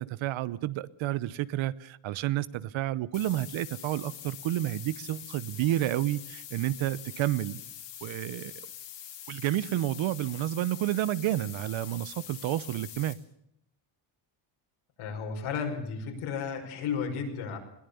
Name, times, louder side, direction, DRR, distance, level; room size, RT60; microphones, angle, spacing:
voice 1, 0.0-7.6 8.0-8.5 9.3-13.2, right 14 dB, 70° right, 1.0 m, -30 dB
sound 1, 3.1-13.1, left 10 dB, 60° left, 3.6 m, -44 dB
voice 2, 15.0-17.6, left 6 dB, 80° left, 5.7 m, -33 dB
21.5 x 18.0 x 7.1 m
cardioid pair, 160°, 48 cm